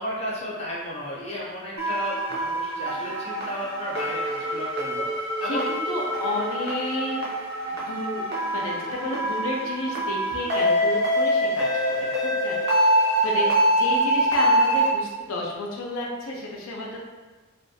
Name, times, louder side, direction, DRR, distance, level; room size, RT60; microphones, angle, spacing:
voice 1, 0.0-5.7, equal, 30° left, -5 dB, 0.6 m, -33 dB
sound 1, 1.8-14.9, right 1 dB, 50° right, 0.6 m, -25 dB
voice 2, 5.4-7.2 7.9-13.0 13.2-17.0, left 2 dB, 85° left, -2 dB, 0.4 m, -31 dB
2.3 x 2.2 x 2.7 m, 1.3 s
head